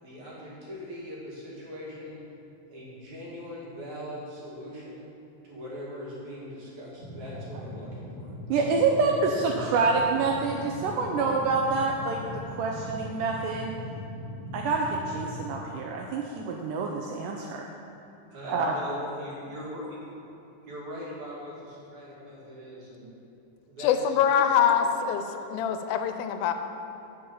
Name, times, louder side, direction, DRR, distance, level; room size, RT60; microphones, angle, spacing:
voice 1, 0.0-2.2 2.7-5.0 5.4-8.3 18.3-19.8 20.6-23.1 23.6-24.2, equal, 55° right, -7 dB, 3.2 m, -41 dB
sound 1, 7.0-15.5, left 1 dB, 40° right, 3.0 m, -40 dB
voice 2, 8.5-13.7 14.5-17.7 18.5-18.7, right 4 dB, 80° right, 1 dB, 1.9 m, -27 dB
voice 3, 23.8-26.5, left 8 dB, 85° left, 8 dB, 2.4 m, -24 dB
8.7 x 5.4 x 6.9 m, 2.8 s
omnidirectional pair, 4.1 m